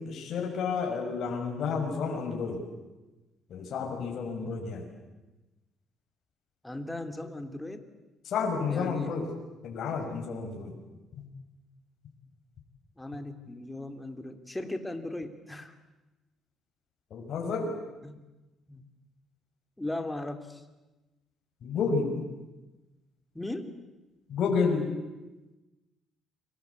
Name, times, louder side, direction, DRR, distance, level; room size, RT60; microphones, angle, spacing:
voice 1, 0.0-2.6 3.5-4.9 8.2-9.3 9.6-10.7 11.1-11.3 17.1-17.7 21.6-22.2 24.3-24.9, left 5 dB, 60° left, 1 dB, 6.2 m, -30 dB
voice 2, 6.6-7.9 8.7-9.2 13.0-15.7 18.0-18.2 18.7-18.9 19.8-20.6 23.3-23.8, left 1 dB, 10° left, 7 dB, 3.0 m, -37 dB
30.0 x 24.0 x 8.4 m, 1.1 s
cardioid pair, 100°, 0 cm